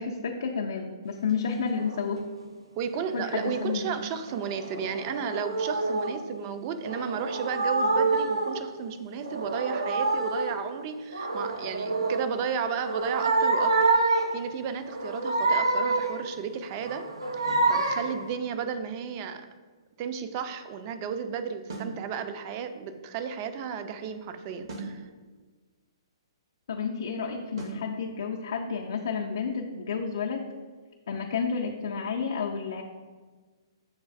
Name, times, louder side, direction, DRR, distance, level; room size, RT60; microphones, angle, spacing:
voice 1, 0.0-2.2 3.1-3.9 26.7-30.5 31.1-32.8, left 5 dB, 65° left, 0 dB, 0.4 m, -31 dB
sound 1, 1.8-2.1 3.4-3.7 4.3-6.2 6.8-8.6 9.1-10.6 11.1-12.3 12.7-14.4 14.9-16.3 16.8-18.2, right 3 dB, 85° right, 0.5 m, -27 dB
voice 2, 2.8-17.1 17.4-19.5 20.0-25.0, right 7 dB, 35° right, 8 dB, 0.4 m, -33 dB
sound 2, 21.7-22.0 24.7-25.0 27.6-27.9, right 3 dB, 65° right, 0.8 m, -37 dB
7.1 x 2.5 x 2.4 m, 1.4 s
figure-of-eight pair, 125°, 3 cm